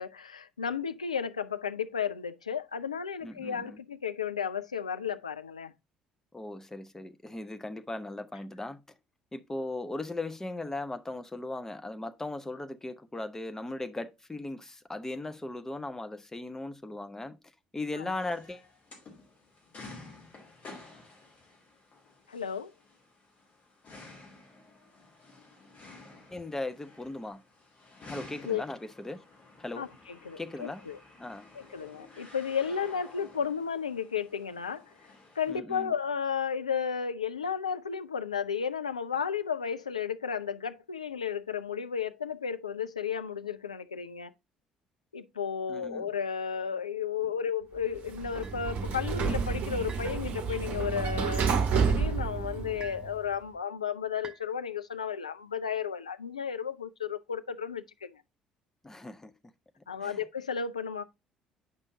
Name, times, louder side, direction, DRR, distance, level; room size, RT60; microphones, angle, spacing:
voice 1, 0.0-5.7 18.0-18.2 22.3-22.7 28.5-28.6 29.8-31.0 31.5-34.9 35.4-44.3 45.1-58.2 59.9-61.0, left 7 dB, 80° left, 0.3 m, -33 dB
voice 2, 3.2-3.8 6.3-8.8 9.3-17.4 17.7-18.6 26.3-27.4 28.1-29.2 29.6-29.8 30.4-30.8 31.2-31.5 35.5-35.9 45.7-46.1 58.8-59.3 60.0-60.2, left 2 dB, 15° left, 0.7 m, -38 dB
sound 1, 18.1-35.5, left 3 dB, 40° left, 2.7 m, -52 dB
Sliding door, 48.0-53.2, right 5 dB, 50° right, 0.9 m, -30 dB
sound 2, 48.4-48.6 49.9-50.1 51.4-51.6 52.8-53.1 54.2-54.5, right 5 dB, 25° right, 1.0 m, -47 dB
8.1 x 5.4 x 2.6 m
figure-of-eight pair, 50°, 3 cm